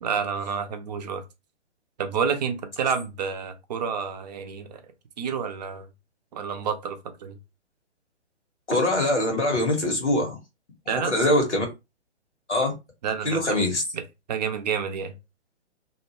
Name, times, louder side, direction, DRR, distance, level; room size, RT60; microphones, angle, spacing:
voice 1, 0.0-1.2 2.0-4.8 5.2-5.9 6.3-7.4 10.9-11.2 13.0-13.6 13.9-14.0 14.3-15.1, right 6 dB, 40° right, 0.5 m, -29 dB
voice 2, 8.7-10.4 10.9-11.6 12.5-12.8 13.2-13.8, left 1 dB, 85° left, 1.3 m, -23 dB
2.7 x 2.1 x 2.9 m
figure-of-eight pair, 125°, 34 cm